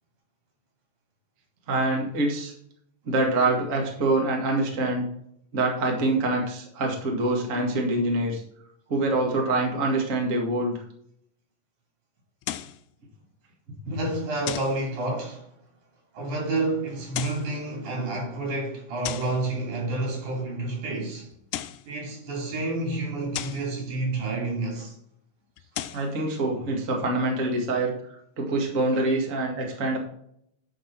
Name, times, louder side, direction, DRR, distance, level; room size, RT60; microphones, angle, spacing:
voice 1, 1.7-2.5 3.1-5.1 5.5-8.4 8.9-10.8 25.9-30.0, right 2 dB, 30° right, 1.9 m, -25 dB
sound 1, 12.4-12.8 14.5-14.8 17.0-17.5 19.0-19.4 21.3-21.9 23.3-23.7 25.6-26.1, left 13 dB, 85° left, 2.1 m, -34 dB
voice 2, 13.9-15.5 16.1-21.3 21.9-25.0 26.3-26.4, right 2 dB, 70° right, 4.6 m, -29 dB
12.0 x 5.3 x 4.7 m
omnidirectional pair, 3.7 m